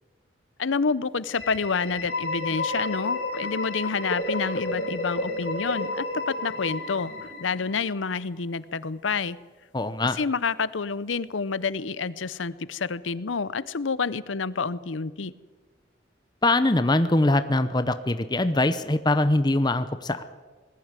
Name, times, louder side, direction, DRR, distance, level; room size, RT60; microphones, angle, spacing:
voice 1, 0.6-7.1 7.4-9.4 10.1-15.3, left 5 dB, 85° left, 17 dB, 0.7 m, -28 dB
sound 1, 1.3-8.1, left 2 dB, 65° left, 3.4 m, -31 dB
voice 2, 9.7-10.2 16.4-20.2, left 2 dB, 20° left, 11 dB, 0.8 m, -22 dB
20.0 x 14.5 x 9.0 m, 1.4 s
head